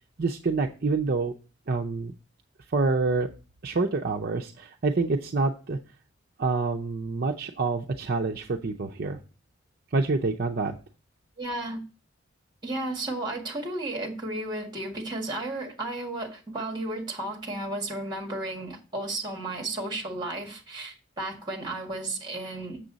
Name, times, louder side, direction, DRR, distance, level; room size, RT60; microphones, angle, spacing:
voice 1, 0.2-1.3 1.7-2.1 2.7-3.3 3.6-5.8 6.4-9.2 9.9-10.8, right 3 dB, 50° right, 0.6 m, -27 dB
voice 2, 11.4-11.8 12.6-22.8, right 2 dB, 25° right, 1.9 m, -33 dB
7.5 x 6.9 x 3.9 m
head